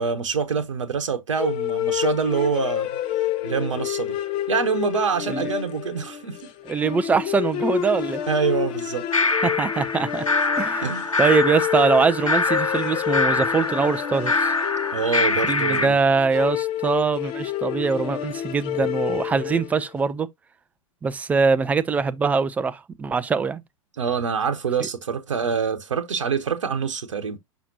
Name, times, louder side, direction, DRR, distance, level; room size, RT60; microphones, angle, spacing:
voice 1, 0.0-3.0 3.4-4.2 4.5-6.4 8.3-9.0 10.8-11.2 14.9-16.0 24.0-27.4, right 6 dB, 65° right, 0.9 m, -25 dB
sound 1, 1.4-19.9, left 12 dB, 30° left, 0.8 m, -29 dB
voice 2, 6.7-8.2 9.4-10.3 10.6-10.9 11.2-14.5 15.5-20.3 21.0-23.6 24.8-24.9, right 5 dB, 10° right, 0.4 m, -23 dB
sound 2, 9.1-15.9, left 3 dB, 85° left, 0.6 m, -24 dB
6.1 x 5.7 x 2.7 m
figure-of-eight pair, 100°, 17 cm